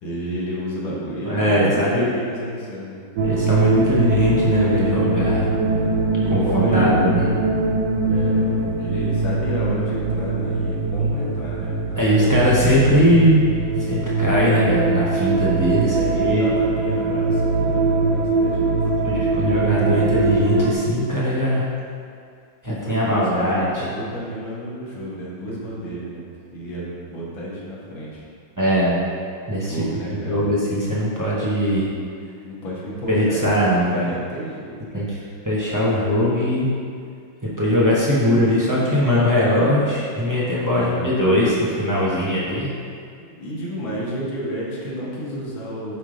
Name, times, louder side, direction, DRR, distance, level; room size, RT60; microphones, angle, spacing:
voice 1, 0.0-3.0 5.4-7.2 8.1-12.9 15.9-18.7 22.6-26.2 26.5-28.3 29.7-30.4 32.4-35.1 40.7-41.4 43.1-46.0, right 1 dB, 80° left, -6 dB, 2.1 m, -31 dB
voice 2, 1.3-2.1 3.2-5.5 6.3-7.3 12.0-13.4 13.9-16.5 19.0-21.7 22.6-23.8 28.6-29.0 29.5-29.7 30.3-31.9 33.1-34.1 34.9-35.1 35.4-36.7 37.6-42.7, equal, 30° right, -8 dB, 0.3 m, -20 dB
sound 1, 3.2-20.7, right 2 dB, 70° right, 1.1 m, -21 dB
9.7 x 3.4 x 3.8 m, 2.3 s
omnidirectional pair, 2.2 m